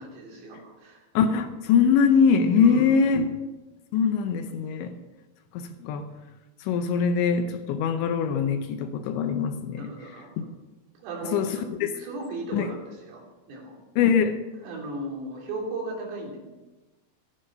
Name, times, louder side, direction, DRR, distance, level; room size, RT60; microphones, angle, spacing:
voice 1, 0.1-1.0 2.6-3.1 9.8-10.5 11.0-11.7 12.0-13.2 13.5-13.8 14.6-16.4, right 2 dB, 85° right, -2 dB, 5.8 m, -36 dB
voice 2, 1.1-3.3 3.9-5.0 5.5-6.1 6.6-9.9 11.2-11.9 12.5-12.7 14.0-14.3, left 6 dB, 80° left, 7 dB, 2.8 m, -22 dB
14.0 x 11.5 x 5.5 m, 1.1 s
omnidirectional pair, 5.8 m